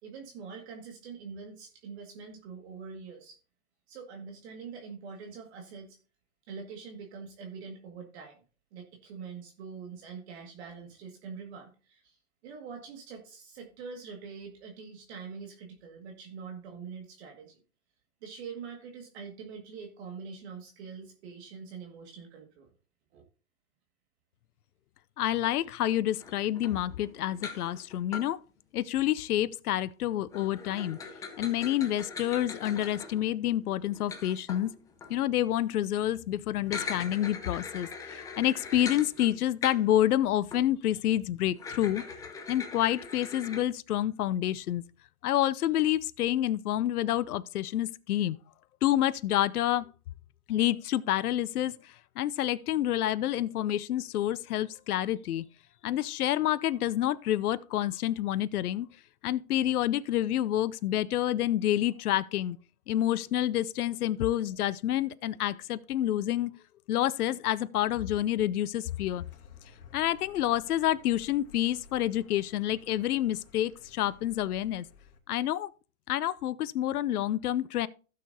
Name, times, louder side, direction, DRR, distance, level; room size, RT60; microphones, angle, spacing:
voice 1, 0.0-3.4 3.9-6.0 6.5-8.4 8.7-12.2 12.4-17.6 18.2-22.7 23.1-23.2, right 5 dB, 45° right, 2.0 m, -44 dB
voice 2, 25.2-28.4 28.7-31.0 31.4-34.7 35.1-42.0 42.5-44.8 45.2-48.4 48.8-49.9 50.5-55.4 55.8-58.9 59.2-62.6 62.9-66.5 66.9-69.2 69.9-74.9 75.3-75.7 76.1-77.9, left 12 dB, 80° left, 0.6 m, -28 dB
sound 1, 26.2-28.3 30.3-35.3 36.5-40.1 40.5-40.7 41.5-43.6, left 4 dB, 10° left, 0.6 m, -41 dB
Car, 68.9-75.2, left 4 dB, 65° left, 2.7 m, -56 dB
16.0 x 6.6 x 2.7 m
hypercardioid pair, 140°, 44 cm